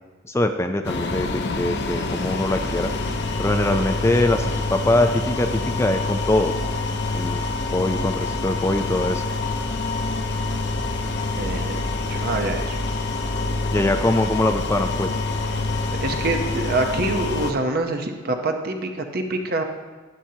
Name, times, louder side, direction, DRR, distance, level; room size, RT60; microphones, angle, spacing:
voice 1, 0.3-2.9 3.4-6.5 7.1-7.4 7.7-9.2 13.7-15.1, left 1 dB, 15° left, 6 dB, 0.4 m, -22 dB
sound 1, 0.8-17.5, left 3 dB, 55° left, 0.7 m, -26 dB
voice 2, 11.4-12.8 15.9-19.6, right 2 dB, 50° right, 5 dB, 0.8 m, -26 dB
11.5 x 10.5 x 2.8 m, 1.3 s
head